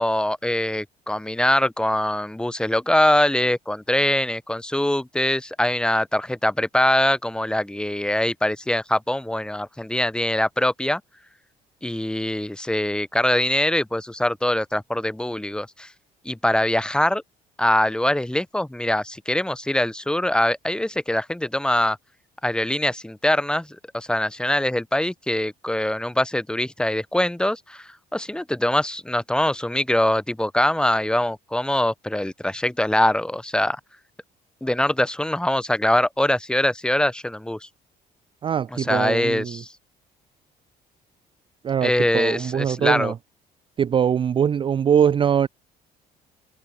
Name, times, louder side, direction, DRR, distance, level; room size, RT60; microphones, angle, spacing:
voice 1, 0.0-11.0 11.8-15.9 16.3-17.2 17.6-22.0 22.4-23.7 23.9-33.8 34.6-37.7 38.7-39.7 41.8-43.1, left 1 dB, 5° left, 1.8 m, -23 dB
voice 2, 38.4-39.6 41.6-43.1 43.8-45.5, right 8 dB, 30° right, 0.4 m, -22 dB
open air
cardioid pair, 110°, 17 cm